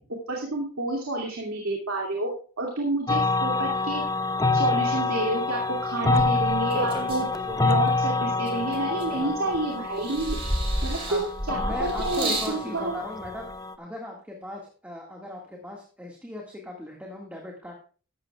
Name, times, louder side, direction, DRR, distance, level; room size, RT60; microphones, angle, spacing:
voice 1, 0.3-2.3 2.6-4.0 4.5-7.2 7.6-10.4 10.8-12.9, right 2 dB, 80° right, -1 dB, 2.5 m, -29 dB
sound 1, 3.1-13.7, left 3 dB, 15° left, 0.5 m, -27 dB
sound 2, 6.1-7.9 8.5-9.5 10.0-12.6 13.5-13.6, right 1 dB, 25° right, 2.5 m, -31 dB
voice 2, 7.2-7.7 8.9-9.3 11.1-11.2 11.5-13.5 13.8-17.7, left 1 dB, 5° right, -1 dB, 1.9 m, -38 dB
14.5 x 13.0 x 2.4 m, 0.39 s
head